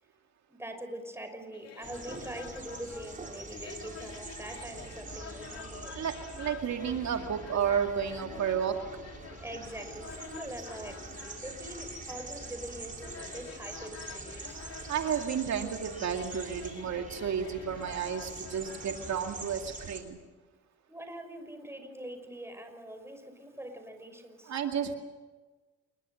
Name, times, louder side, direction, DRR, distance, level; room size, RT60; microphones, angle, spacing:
voice 1, 0.5-6.0 9.4-14.7 20.9-24.6, right 1 dB, 10° right, 7 dB, 5.6 m, -43 dB
sound 1, 1.5-19.2, left 6 dB, 55° left, 3.0 m, -49 dB
sound 2, 1.8-20.0, right 3 dB, 25° right, 5.6 m, -45 dB
voice 2, 6.0-8.8 14.9-20.2 24.5-24.9, right 8 dB, 65° right, 4 dB, 2.3 m, -32 dB
28.0 x 22.5 x 6.5 m, 1.3 s
cardioid pair, 90°, 30 cm